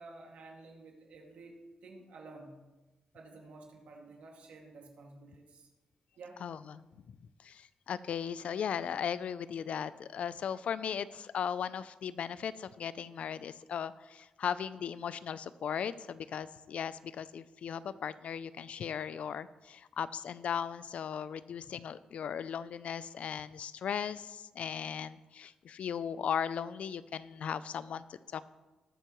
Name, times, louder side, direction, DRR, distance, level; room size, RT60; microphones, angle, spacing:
voice 1, 0.0-2.5 3.1-5.7 6.2-6.4, right 3 dB, 80° right, 0 dB, 2.2 m, -51 dB
voice 2, 6.4-6.8 7.4-28.4, left 8 dB, 70° left, 16 dB, 0.4 m, -37 dB
20.0 x 6.8 x 3.1 m, 1.1 s
cardioid pair, 70°, 2 cm